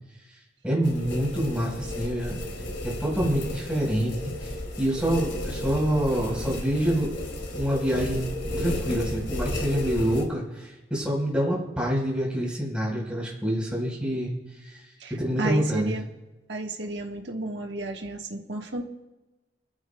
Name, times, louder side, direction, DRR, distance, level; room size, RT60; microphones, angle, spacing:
voice 1, 0.6-2.3 2.8-7.1 7.5-8.2 8.6-14.3 14.6-14.8 15.1-16.0, equal, 5° right, -4 dB, 4.4 m, -26 dB
sound 1, 0.8-10.2, left 1 dB, 85° left, 3.1 m, -33 dB
voice 2, 15.0-16.0 16.5-18.8, right 2 dB, 75° right, 2 dB, 1.4 m, -32 dB
24.5 x 14.0 x 2.3 m, 1.1 s
head